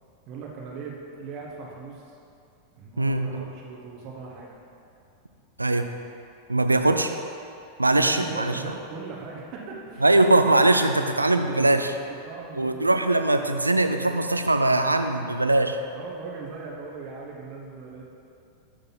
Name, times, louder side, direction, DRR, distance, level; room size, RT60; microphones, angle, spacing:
voice 1, 0.3-2.2 2.8-4.5 6.9-7.2 7.9-10.0 10.7-12.8 15.9-18.0, right 4 dB, 40° right, -3 dB, 1.1 m, -39 dB
voice 2, 3.0-3.5 5.6-5.9 6.5-7.1 7.8-8.6 10.0-11.9 12.5-15.8, right 2 dB, 85° right, 8 dB, 0.4 m, -21 dB
6.7 x 6.4 x 3.9 m, 2.6 s
figure-of-eight pair, 90°, 0 cm